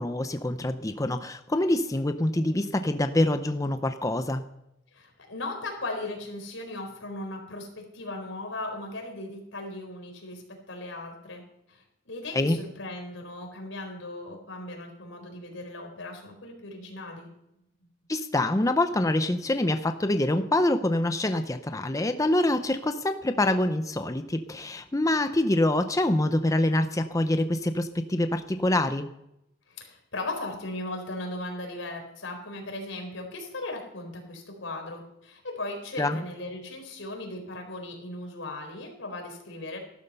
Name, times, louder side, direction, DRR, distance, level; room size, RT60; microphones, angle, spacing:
voice 1, 0.0-4.4 12.3-12.6 18.1-29.1 36.0-36.2, left 1 dB, 15° left, 9 dB, 0.6 m, -25 dB
voice 2, 4.9-11.4 11.7-17.3 29.7-39.8, left 2 dB, 90° left, 3 dB, 4.2 m, -37 dB
15.0 x 12.5 x 5.6 m, 0.85 s
head